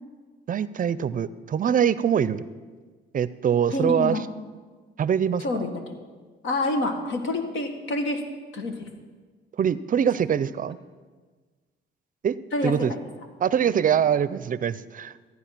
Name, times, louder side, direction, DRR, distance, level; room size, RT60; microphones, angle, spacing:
voice 1, 0.5-2.4 3.1-4.2 5.0-5.4 9.6-10.8 12.2-12.4 12.6-12.9 13.4-15.1, right 8 dB, 45° right, 17 dB, 0.5 m, -23 dB
voice 2, 3.7-4.3 5.4-6.0 6.4-8.2 8.5-8.9 12.5-12.7 13.6-13.7, left 2 dB, 80° left, 5 dB, 1.6 m, -27 dB
14.0 x 9.5 x 5.8 m, 1.4 s
cardioid pair, 90°, 20 cm